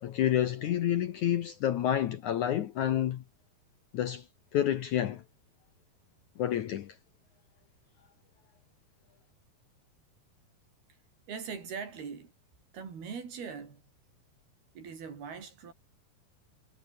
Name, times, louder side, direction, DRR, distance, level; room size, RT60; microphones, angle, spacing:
voice 1, 0.0-3.2 3.9-4.2 4.5-5.2 6.4-6.9, left 11 dB, 65° left, 2.1 m, -29 dB
voice 2, 11.3-12.3 12.7-13.8 14.7-15.7, right 6 dB, 70° right, 6.5 m, -41 dB
omnidirectional pair, 4.7 m